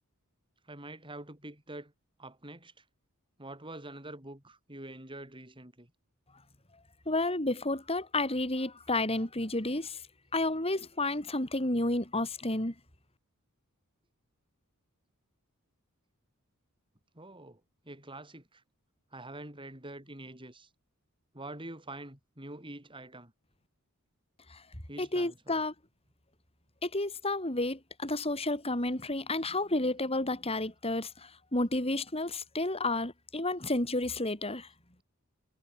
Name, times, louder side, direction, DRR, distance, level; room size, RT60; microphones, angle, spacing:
voice 1, 0.7-1.9 2.2-2.8 3.4-5.9 17.1-18.6 19.1-20.7 21.3-23.3 24.9-25.6, right 1 dB, 20° right, 6.2 m, -46 dB
voice 2, 7.1-10.0 10.3-12.7 24.5-24.6 25.0-25.7 26.8-34.7, left 2 dB, 25° left, 5.0 m, -31 dB
head